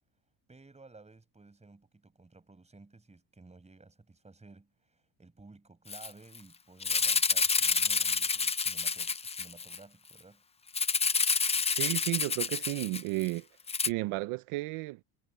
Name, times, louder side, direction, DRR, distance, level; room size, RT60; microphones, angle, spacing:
voice 1, 0.5-10.4, right 3 dB, 15° right, 5.8 m, -55 dB
Rattle (instrument), 5.9-6.1 6.3-6.4 6.8-9.8 10.7-13.3 13.7-13.9, left 5 dB, 15° left, 0.5 m, -28 dB
voice 2, 11.8-13.5 13.8-15.0, right 21 dB, 80° right, 0.7 m, -33 dB
cardioid pair, 140°, 49 cm